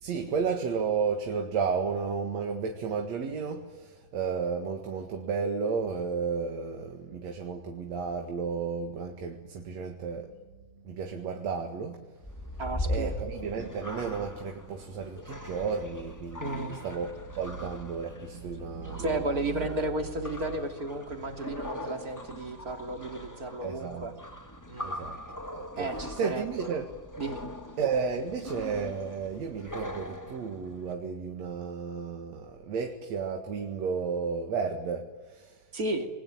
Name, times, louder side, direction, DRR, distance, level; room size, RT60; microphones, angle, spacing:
voice 1, 0.0-10.4 10.8-12.0 12.8-17.1 17.3-19.7 23.6-24.1 24.8-25.2 25.5-26.9 27.8-35.6, right 5 dB, 60° right, 3.0 m, -33 dB
sound 1, 12.2-30.9, left 1 dB, 10° left, 0.8 m, -41 dB
voice 2, 12.6-13.1 16.4-16.8 19.0-24.1 24.7-25.0 25.8-26.4 27.2-27.4 35.7-36.1, right 1 dB, 30° right, 2.8 m, -33 dB
28.5 x 21.0 x 9.1 m
omnidirectional pair, 3.7 m